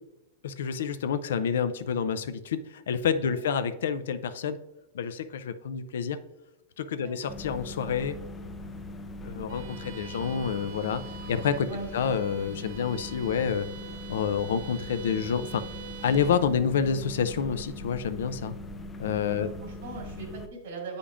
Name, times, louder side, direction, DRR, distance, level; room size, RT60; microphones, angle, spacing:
voice 1, 0.4-4.6 4.9-6.2 6.8-8.2 9.2-11.0 11.3-11.7 11.9-13.7 14.1-15.6 16.0-18.5 19.0-19.5, left 7 dB, 85° left, 12 dB, 0.4 m, -28 dB
sound 1, 7.3-20.5, left 2 dB, 15° left, 0.4 m, -41 dB
Bowed string instrument, 9.5-16.5, right 9 dB, 60° right, 0.5 m, -46 dB
voice 2, 19.4-21.0, right 4 dB, 80° right, 0 dB, 1.8 m, -40 dB
8.3 x 5.2 x 2.5 m, 0.92 s
supercardioid pair, 150°, 0 cm